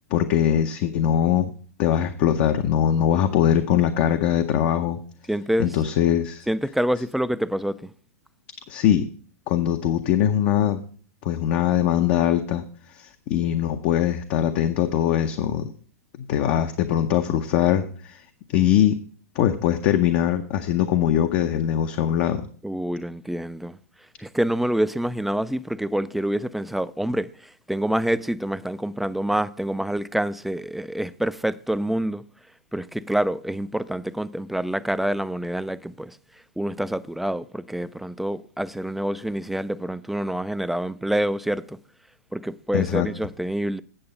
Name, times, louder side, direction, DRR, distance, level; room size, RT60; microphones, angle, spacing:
voice 1, 0.1-1.5 1.8-5.0 5.6-6.5 8.7-9.1 9.5-10.8 11.2-12.6 12.9-15.7 16.3-18.2 18.5-19.0 19.3-22.5 42.7-43.1, left 10 dB, 45° left, 0.7 m, -22 dB
voice 2, 5.3-5.8 6.5-7.9 22.6-23.8 24.2-32.2 32.7-36.2 36.6-41.8 42.3-43.8, right 1 dB, ahead, 0.3 m, -27 dB
8.8 x 6.8 x 5.3 m
hypercardioid pair, 110°, 8 cm